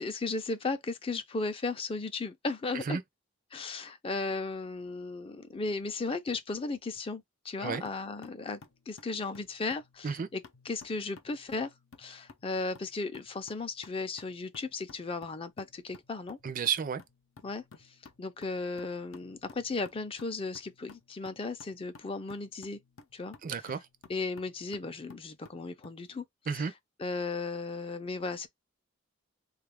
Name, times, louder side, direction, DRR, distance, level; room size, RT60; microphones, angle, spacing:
voice 1, 0.0-3.0 3.5-8.6 8.9-10.4 10.7-11.7 12.0-16.4 17.4-17.6 18.2-22.8 23.1-23.4 24.1-26.2 27.0-28.5, left 3 dB, 25° left, 0.4 m, -35 dB
sound 1, 7.8-26.0, left 4 dB, 75° left, 0.6 m, -56 dB
voice 2, 16.4-17.0 23.4-23.9 26.5-26.7, right 6 dB, 40° right, 0.4 m, -32 dB
3.6 x 2.4 x 3.4 m
head